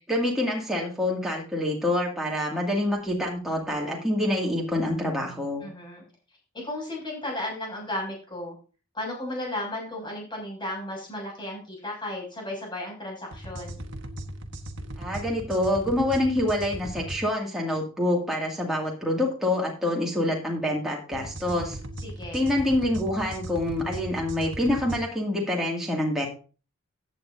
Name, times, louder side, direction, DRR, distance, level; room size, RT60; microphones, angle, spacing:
voice 1, 0.1-5.6 15.0-21.8 22.3-26.3, left 1 dB, ahead, -3 dB, 2.3 m, -26 dB
voice 2, 5.6-6.0 6.6-8.6 8.9-13.8 22.0-22.5, left 1 dB, 20° left, -1 dB, 6.8 m, -34 dB
sound 1, 13.3-17.2 21.1-25.0, right 1 dB, 55° right, 1.4 m, -38 dB
15.5 x 9.0 x 2.7 m, 0.36 s
head